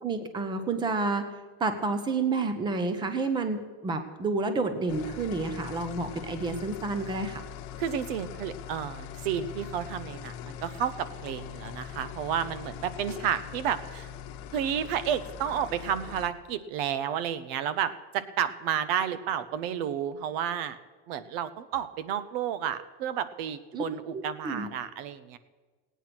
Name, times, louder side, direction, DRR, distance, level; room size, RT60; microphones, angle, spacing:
voice 1, 0.0-7.4 23.7-23.8 24.1-24.7, right 3 dB, 15° right, 9 dB, 0.8 m, -30 dB
sound 1, 4.9-16.3, left 9 dB, 45° left, 1.1 m, -42 dB
voice 2, 7.8-14.1 14.5-20.8 21.1-25.4, right 9 dB, 65° right, 14 dB, 0.9 m, -31 dB
18.0 x 9.2 x 6.0 m, 1.3 s
cardioid pair, 175°, 31 cm